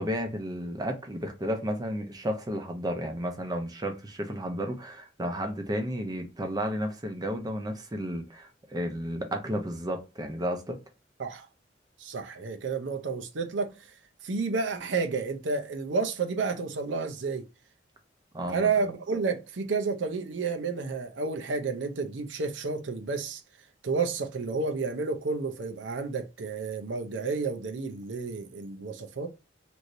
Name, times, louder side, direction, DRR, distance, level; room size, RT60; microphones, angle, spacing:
voice 1, 0.0-10.8 18.3-18.7, equal, 20° right, 0.5 m, -32 dB
voice 2, 12.0-14.0 14.2-17.5 18.5-23.4 23.8-29.3, right 4 dB, 90° right, 0.6 m, -31 dB
3.1 x 2.6 x 2.6 m
head